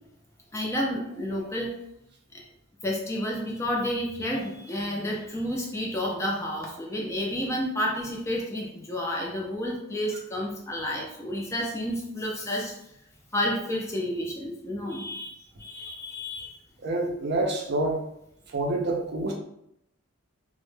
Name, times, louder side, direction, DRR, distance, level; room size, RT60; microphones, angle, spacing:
voice 1, 0.5-1.8 2.3-2.4 2.8-12.7 13.3-16.6, left 1 dB, 15° left, -1 dB, 0.3 m, -30 dB
voice 2, 16.8-18.1 18.5-19.4, right 2 dB, 50° right, 1 dB, 0.4 m, -27 dB
2.1 x 2.0 x 3.1 m, 0.78 s
head